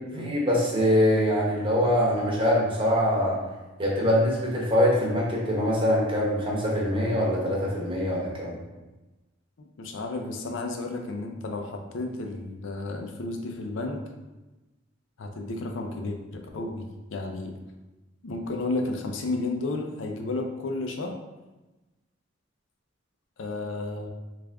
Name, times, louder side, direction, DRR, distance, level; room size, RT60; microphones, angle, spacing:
voice 1, 0.1-3.4 3.8-8.6, equal, 25° right, -4 dB, 0.9 m, -23 dB
voice 2, 9.8-14.0 15.2-17.5 18.2-21.2 23.4-24.1, left 2 dB, 75° left, 3 dB, 0.5 m, -32 dB
3.5 x 2.4 x 3.4 m, 1.1 s
head